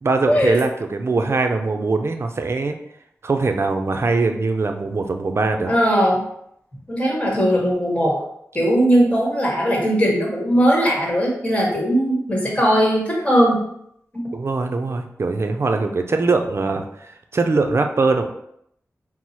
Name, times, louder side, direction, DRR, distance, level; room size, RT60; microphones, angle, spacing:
voice 1, 0.0-2.8 3.2-5.7 14.3-18.3, right 3 dB, 50° right, 5 dB, 0.5 m, -22 dB
voice 2, 5.7-6.2 6.9-8.2 8.5-13.6 14.1-14.2, equal, 20° left, -2 dB, 1.4 m, -19 dB
4.6 x 2.0 x 4.2 m, 0.74 s
wide cardioid pair, 80°, 6 cm